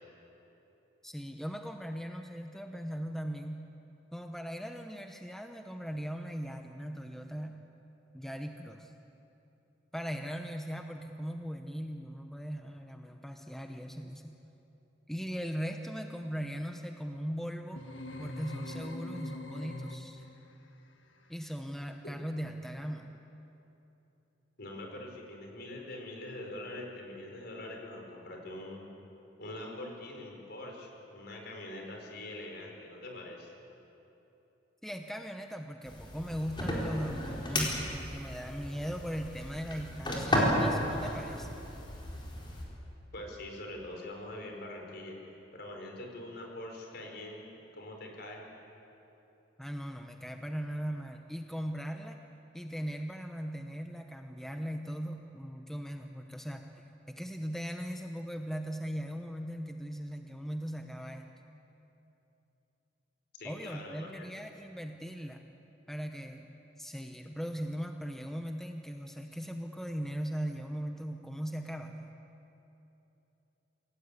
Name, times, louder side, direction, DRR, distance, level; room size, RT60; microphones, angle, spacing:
voice 1, 1.0-3.6 4.1-7.6 8.1-8.9 9.9-14.4 15.1-17.8 18.2-20.2 21.3-23.2 34.8-41.6 49.6-52.2 52.5-61.3 63.4-65.4 65.9-72.1, equal, ahead, 4 dB, 0.9 m, -39 dB
sound 1, 17.8-20.4, left 1 dB, 85° left, 1.7 m, -42 dB
voice 2, 24.6-28.8 29.4-33.5 43.1-45.2 45.5-47.4 47.7-48.4 63.3-64.3, left 1 dB, 60° left, 1 dB, 4.8 m, -43 dB
sound 2, 35.8-42.6, left 1 dB, 25° left, 4.6 m, -33 dB
27.0 x 17.5 x 8.5 m, 3.0 s
head